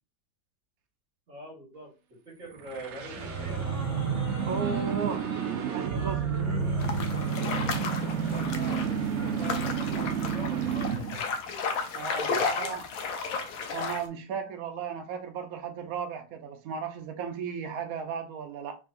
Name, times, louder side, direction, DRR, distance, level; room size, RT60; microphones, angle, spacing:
voice 1, 1.3-1.9 2.3-3.6 8.1-11.3 12.3-12.7, right 1 dB, 45° right, 1.8 m, -44 dB
sound 1, 2.6-11.2, right 7 dB, 85° right, 0.6 m, -30 dB
sound 2, 2.9-10.2, equal, 15° right, 0.8 m, -40 dB
voice 2, 4.5-5.3 5.7-6.3 11.9-12.3 12.6-12.8 13.7-18.8, right 6 dB, 65° right, 1.0 m, -35 dB
sound 3, 6.8-14.1, left 5 dB, 65° left, 1.0 m, -33 dB
3.7 x 3.3 x 2.5 m
omnidirectional pair, 1.8 m